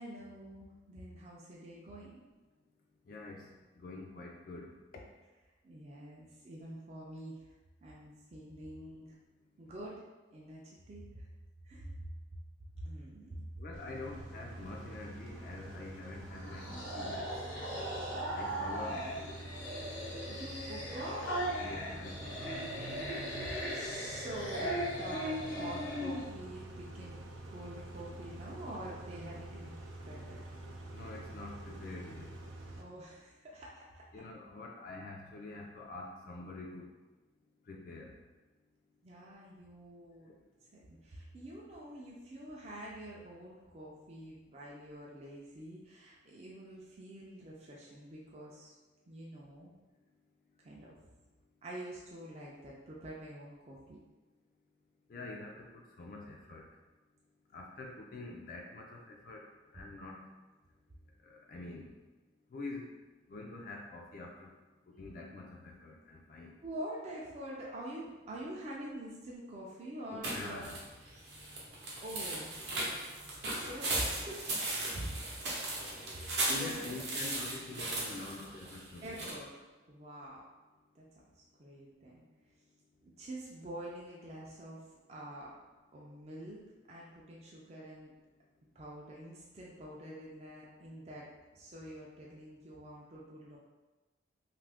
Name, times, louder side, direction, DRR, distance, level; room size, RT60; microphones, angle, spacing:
voice 1, 0.0-2.2 5.6-7.4 7.8-9.1 9.6-10.0 10.3-11.3 11.6-11.9 12.8-13.4 20.3-21.3 21.6-22.6 23.4-27.2 27.5-30.4 32.8-34.2 39.0-40.3 40.7-48.7 49.1-49.7 50.6-51.0 51.6-54.0 66.6-70.8 72.0-72.5 73.4-75.8 76.1-76.9 79.0-79.5 79.9-80.4 81.0-81.1 81.6-82.2 83.0-84.8 85.1-85.5 85.9-86.6 86.9-88.1 88.8-91.3 91.5-93.6, right 1 dB, 35° right, -4 dB, 0.4 m, -46 dB
voice 2, 3.1-3.4 3.8-4.7 13.6-17.3 18.3-19.4 21.5-22.6 23.5-23.7 30.9-32.3 34.1-36.9 37.7-38.1 55.1-56.7 57.5-59.4 59.7-60.2 61.2-61.9 62.5-62.9 63.3-64.5 65.0-66.6 70.1-70.8 76.5-79.3, left 2 dB, 45° left, -1 dB, 0.3 m, -46 dB
Car / Idling / Accelerating revving vroom, 13.7-32.8, right 2 dB, 90° right, 0.5 m, -47 dB
sound 1, 16.3-26.3, equal, 85° left, 0.9 m, -38 dB
sound 2, 70.2-79.3, right 2 dB, 60° right, 0.7 m, -37 dB
2.6 x 2.4 x 3.4 m, 1.2 s
head